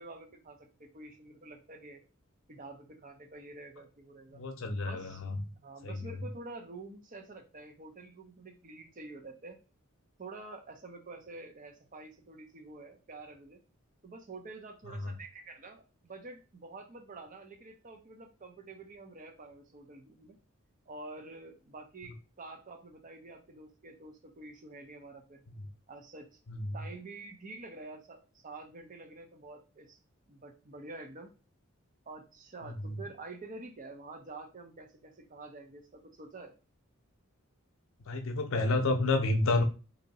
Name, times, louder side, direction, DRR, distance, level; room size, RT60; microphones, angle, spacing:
voice 1, 0.0-2.0 2.5-4.4 4.8-5.2 5.6-9.6 10.2-13.6 14.0-20.4 20.9-25.4 25.9-26.3 26.7-30.0 30.3-31.3 32.1-36.6, right 3 dB, 40° right, 4 dB, 0.6 m, -48 dB
voice 2, 4.3-5.4 5.8-6.1 15.0-15.1 26.5-26.8 32.6-33.0 38.1-39.6, left 2 dB, 70° left, 6 dB, 0.7 m, -30 dB
2.8 x 2.7 x 4.0 m, 0.33 s
head